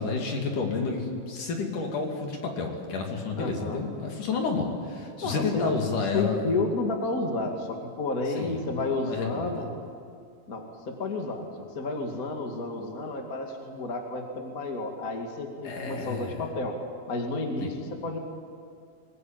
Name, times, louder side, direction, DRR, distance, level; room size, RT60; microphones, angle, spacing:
voice 1, 0.0-6.4 8.4-9.6 15.6-16.4 17.6-17.7, left 4 dB, 55° left, 1 dB, 4.0 m, -30 dB
voice 2, 3.4-3.8 5.2-5.6 6.1-9.7 10.5-11.4 11.7-16.8 17.1-18.2, left 3 dB, 30° left, 3 dB, 1.9 m, -31 dB
24.0 x 20.0 x 9.0 m, 2.3 s
omnidirectional pair, 4.5 m